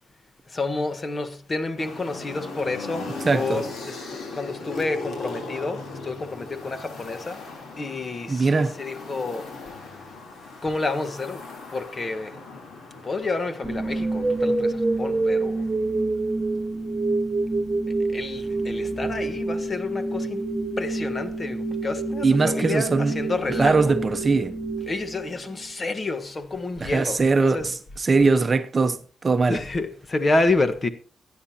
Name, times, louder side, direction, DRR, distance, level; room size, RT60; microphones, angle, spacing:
voice 1, 0.5-7.4 7.8-9.5 10.6-11.4 11.7-12.4 13.0-15.6 18.1-20.5 20.8-23.8 24.9-27.7 29.5-30.9, left 3 dB, 30° left, 1.4 m, -29 dB
sound 1, 1.8-16.6 17.7-19.4, left 3 dB, 85° left, 4.8 m, -39 dB
voice 2, 3.2-3.6 8.3-8.8 22.2-23.2 23.6-24.5 26.8-29.0 29.2-29.6, right 4 dB, 30° right, 0.9 m, -21 dB
sound 2, 13.6-25.7, right 2 dB, ahead, 2.5 m, -27 dB
23.5 x 9.7 x 2.9 m
wide cardioid pair, 140°, 0 cm